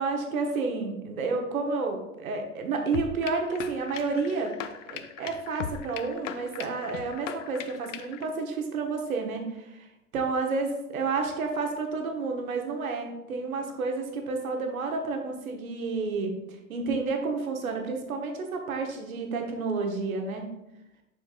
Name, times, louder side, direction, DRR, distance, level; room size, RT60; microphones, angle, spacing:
voice 1, 0.0-4.6 4.9-20.5, right 4 dB, 70° right, 3 dB, 1.3 m, -30 dB
sound 1, 2.9-8.3, left 8 dB, 60° left, 0.7 m, -39 dB
7.0 x 5.7 x 2.5 m, 0.89 s
figure-of-eight pair, 90°, 43 cm